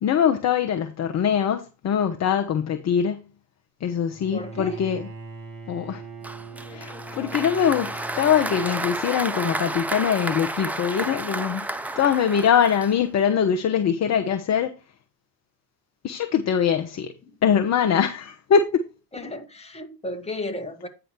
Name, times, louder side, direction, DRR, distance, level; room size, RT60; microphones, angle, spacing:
voice 1, 0.0-3.2 3.8-5.1 5.7-6.0 6.7-11.6 11.9-14.7 16.0-17.1 17.4-18.8, left 8 dB, 30° left, 0.9 m, -22 dB
Bowed string instrument, 4.1-9.3, right 2 dB, 45° right, 2.8 m, -41 dB
voice 2, 4.3-4.8 17.2-17.4 19.1-20.9, left 1 dB, 10° left, 1.8 m, -34 dB
Applause, 6.2-13.3, right 2 dB, 5° right, 0.4 m, -31 dB
9.3 x 5.1 x 4.5 m
hypercardioid pair, 75°, 50 cm